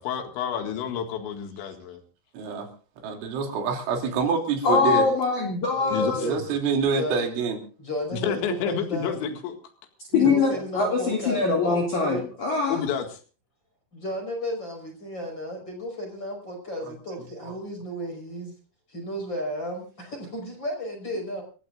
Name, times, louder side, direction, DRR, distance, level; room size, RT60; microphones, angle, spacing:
voice 1, 0.0-2.0 5.9-6.3 8.1-9.6 12.7-13.2, left 8 dB, 75° left, 5 dB, 4.2 m, -29 dB
voice 2, 2.3-2.7 3.0-5.1 6.2-7.6 10.1-10.4 16.9-17.0 17.4-17.5, right 5 dB, 85° right, 3 dB, 5.3 m, -26 dB
voice 3, 4.6-6.2 10.1-12.8, left 4 dB, 50° left, 0 dB, 3.3 m, -23 dB
voice 4, 5.8-6.4 6.9-7.2 7.8-9.2 10.2-12.2 13.9-18.5 18.9-21.4, equal, 25° left, 2 dB, 5.5 m, -33 dB
28.0 x 14.5 x 2.5 m, 0.37 s
omnidirectional pair, 5.4 m